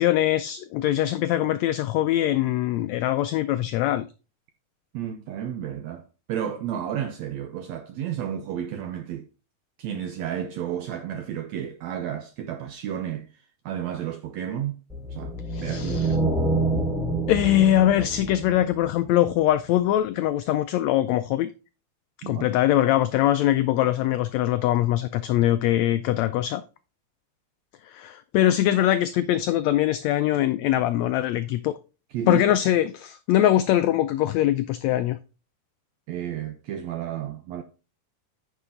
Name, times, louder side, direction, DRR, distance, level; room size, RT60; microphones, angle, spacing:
voice 1, 0.0-4.0 15.5-16.1 17.3-21.5 22.2-26.6 27.8-31.7 32.3-35.2, left 13 dB, 90° left, 1.5 m, -22 dB
voice 2, 4.9-6.0 6.3-9.3 9.8-14.8 15.1-16.2 22.2-22.5 32.1-32.4 36.1-37.6, right 9 dB, 75° right, 1.7 m, -32 dB
sound 1, 14.9-19.3, right 2 dB, 5° right, 0.5 m, -27 dB
9.9 x 5.8 x 3.7 m
omnidirectional pair, 3.7 m